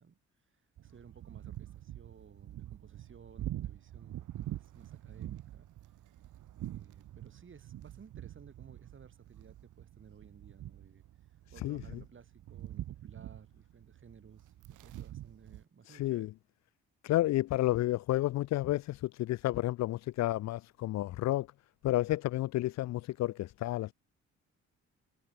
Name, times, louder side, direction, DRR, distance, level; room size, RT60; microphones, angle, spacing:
voice 1, 0.0-5.7 6.5-11.0 11.5-16.3, right 6 dB, 40° right, 6.5 m, -57 dB
sound 1, 0.8-15.6, right 13 dB, 80° right, 5.4 m, -45 dB
voice 2, 15.9-16.3 17.0-21.5 21.8-23.9, left 16 dB, 65° left, 0.4 m, -31 dB
cardioid pair, 90°, 30 cm